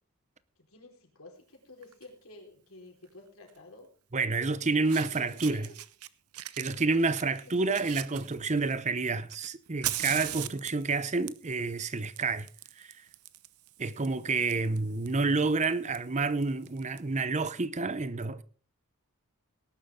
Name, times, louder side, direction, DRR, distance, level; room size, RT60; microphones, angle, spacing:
voice 1, 0.6-3.9 4.5-5.7 6.8-7.9 10.4-10.6, left 2 dB, 65° left, 4.5 m, -51 dB
Fire, 1.8-2.0 3.5-3.6 4.5-4.6 4.8-6.1 6.3-8.8 9.3-17.0, right 14 dB, 80° right, 0.7 m, -41 dB
voice 2, 4.1-5.7 6.6-12.5 12.8-12.9 13.8-18.4, right 3 dB, 30° right, 0.7 m, -29 dB
18.5 x 11.0 x 3.7 m
head